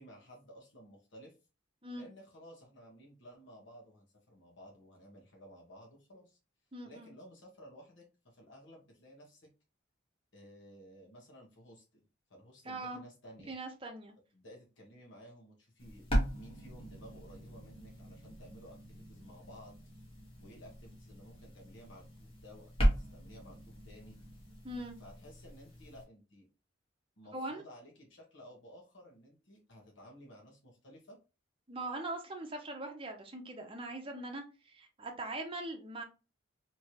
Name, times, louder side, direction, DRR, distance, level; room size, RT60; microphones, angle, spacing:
voice 1, 0.0-1.3 1.9-6.4 6.8-9.5 10.3-12.0 12.3-13.5 14.3-16.1 16.3-19.8 20.4-24.2 25.0-26.5 27.2-31.2, equal, 65° left, -2 dB, 1.2 m, -55 dB
voice 2, 6.7-7.1 12.7-13.0 13.5-14.1 24.6-24.9 27.3-27.6 31.7-36.0, right 2 dB, 25° right, 3 dB, 0.6 m, -41 dB
sound 1, 15.8-26.0, equal, 30° left, 1.1 m, -37 dB
3.3 x 2.9 x 2.8 m, 0.31 s
head